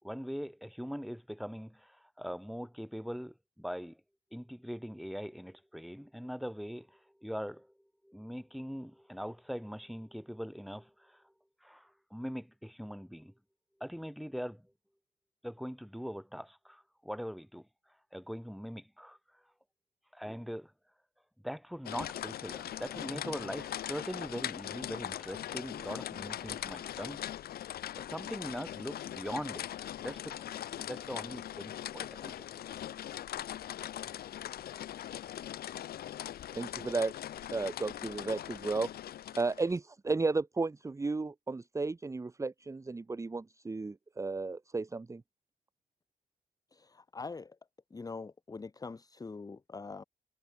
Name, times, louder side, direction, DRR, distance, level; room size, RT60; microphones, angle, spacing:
voice 1, 0.0-4.0 4.3-7.7 8.0-11.3 11.6-13.3 13.8-14.7 15.4-19.4 20.1-20.7 21.4-27.2 28.0-32.5, equal, ahead, 7.3 m, -42 dB
sound 1, 21.8-39.8, left 11 dB, 65° left, 0.6 m, -41 dB
voice 2, 36.5-37.1 37.5-38.9 39.4-45.2, right 3 dB, 20° right, 1.0 m, -34 dB
voice 3, 46.7-47.6 47.9-50.0, left 4 dB, 20° left, 1.0 m, -43 dB
cardioid pair, 125°, 17 cm